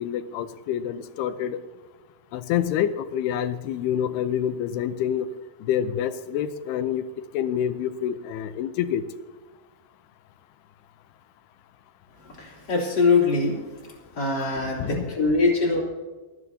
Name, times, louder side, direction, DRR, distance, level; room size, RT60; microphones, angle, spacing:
voice 1, 0.0-1.6 2.3-5.3 5.7-7.0 7.3-9.0 14.6-15.2, left 10 dB, 80° left, 11 dB, 2.6 m, -27 dB
voice 2, 12.4-13.6 14.2-15.8, left 4 dB, 25° left, -3 dB, 3.7 m, -22 dB
29.0 x 11.5 x 2.8 m, 1.3 s
omnidirectional pair, 4.8 m